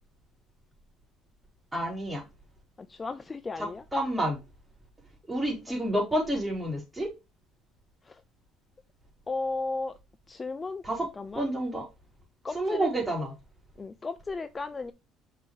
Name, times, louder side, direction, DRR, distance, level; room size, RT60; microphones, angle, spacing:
voice 1, 1.7-2.2 3.6-4.4 5.3-7.1 10.8-11.1 11.3-11.9 12.5-13.3, right 1 dB, 10° right, 3.6 m, -29 dB
voice 2, 2.8-3.8 5.7-5.8 8.1-8.2 9.3-10.0 10.3-10.8 11.2-11.5 12.4-12.9 13.8-14.9, left 3 dB, 25° left, 0.5 m, -35 dB
5.8 x 5.6 x 3.2 m
supercardioid pair, 95°, 0 cm